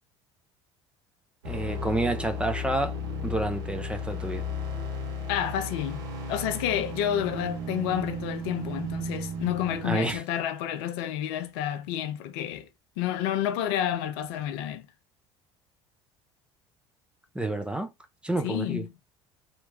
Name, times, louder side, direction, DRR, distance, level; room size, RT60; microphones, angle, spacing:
sound 1, 1.4-10.2, left 2 dB, 60° right, 1.0 m, -34 dB
voice 1, 1.5-2.9 3.2-4.5 9.8-10.2 17.3-17.9 18.2-18.9, right 2 dB, 5° right, 0.5 m, -29 dB
voice 2, 5.3-6.0 6.3-12.7 13.0-14.9 18.4-18.9, left 11 dB, 60° left, 0.4 m, -30 dB
2.9 x 2.2 x 2.6 m
figure-of-eight pair, 60°, 15 cm